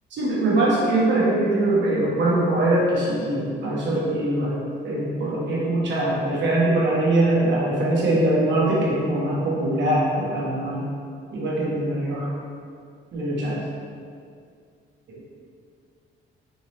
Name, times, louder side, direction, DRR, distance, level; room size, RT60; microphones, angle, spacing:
voice 1, 0.1-4.5 4.8-10.9 11.3-12.3 13.1-13.6, right 1 dB, 65° right, -5 dB, 1.0 m, -22 dB
3.8 x 2.8 x 3.0 m, 2.3 s
cardioid pair, 90°, 20 cm